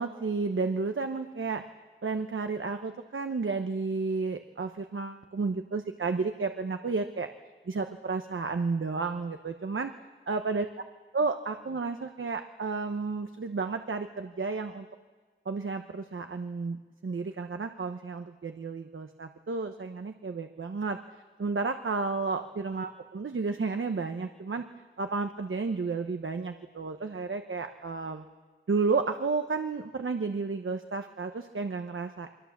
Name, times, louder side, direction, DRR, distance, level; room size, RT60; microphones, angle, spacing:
voice 1, 0.0-1.6 2.0-7.3 7.7-9.9 10.3-10.7 11.1-14.9 15.5-16.8 17.0-21.0 21.4-24.6 25.0-28.2 28.7-32.3, right 4 dB, 85° right, 7 dB, 1.0 m, -32 dB
28.5 x 22.5 x 7.3 m, 1.4 s
wide cardioid pair, 50°, 20 cm